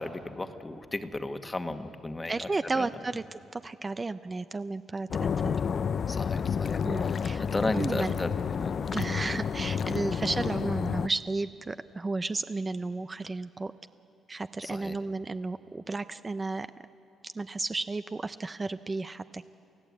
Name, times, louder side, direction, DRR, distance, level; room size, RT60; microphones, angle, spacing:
voice 1, 0.0-2.5 2.7-2.9 6.1-8.3 8.6-8.9 10.2-10.3 14.6-15.0, left 2 dB, 20° left, 7 dB, 1.4 m, -35 dB
voice 2, 2.3-5.1 5.4-5.6 6.8-7.4 7.7-8.1 8.9-13.7 14.3-16.7 17.3-19.5, right 3 dB, 25° right, 11 dB, 0.5 m, -33 dB
sound 1, 5.1-11.1, left 7 dB, 50° left, 0.5 m, -30 dB
29.0 x 15.0 x 8.5 m, 2.9 s
cardioid pair, 90°, 0 cm